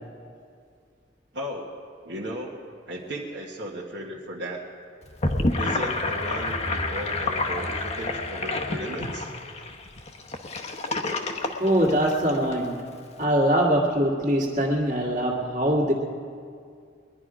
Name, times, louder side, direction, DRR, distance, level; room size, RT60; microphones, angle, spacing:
voice 1, 1.3-1.7 2.0-2.5 2.9-4.7 5.6-9.3, right 1 dB, 65° right, -4 dB, 1.4 m, -35 dB
Gurgling / Sink (filling or washing), 5.0-12.5, left 2 dB, 35° left, 0.9 m, -29 dB
voice 2, 11.6-12.9 13.2-15.9, equal, 40° right, -1 dB, 2.0 m, -23 dB
21.0 x 11.0 x 5.0 m, 2.3 s
head